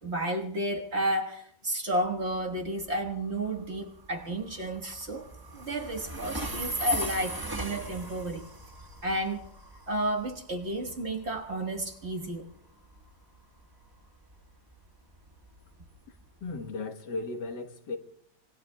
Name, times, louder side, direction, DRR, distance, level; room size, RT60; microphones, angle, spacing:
voice 1, 0.0-5.3 5.5-8.4 9.0-9.5 9.9-12.5, right 1 dB, 40° right, 1.6 m, -32 dB
Train, 1.9-16.7, right 1 dB, 15° right, 1.1 m, -39 dB
voice 2, 16.4-18.0, left 3 dB, 70° left, 1.9 m, -36 dB
26.0 x 23.0 x 2.2 m
omnidirectional pair, 1.9 m